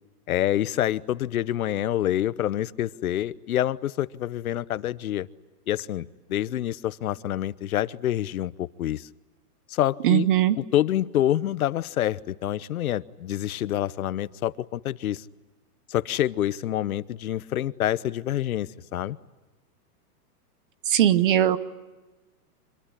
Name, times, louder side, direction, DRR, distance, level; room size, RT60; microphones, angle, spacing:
voice 1, 0.3-5.3 5.7-9.1 9.7-10.3 10.6-15.2 15.9-19.2, left 12 dB, 65° left, 17 dB, 1.0 m, -27 dB
voice 2, 10.0-10.6 20.9-21.6, right 12 dB, 35° right, 14 dB, 1.1 m, -19 dB
26.0 x 22.0 x 10.0 m, 1.2 s
hypercardioid pair, 175°, 47 cm